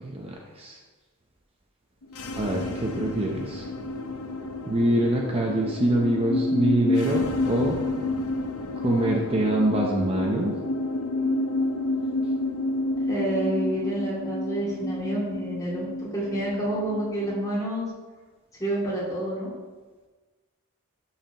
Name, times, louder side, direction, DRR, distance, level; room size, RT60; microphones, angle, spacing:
voice 1, 0.0-0.8 2.3-3.7 4.7-7.8 8.8-10.6, right 1 dB, 25° right, 0 dB, 0.8 m, -25 dB
sound 1, 2.0-17.6, left 2 dB, 85° left, 0.7 m, -29 dB
voice 2, 13.1-17.8 18.6-19.5, right 1 dB, 15° left, -6 dB, 2.5 m, -28 dB
11.5 x 5.8 x 3.0 m, 1.3 s
head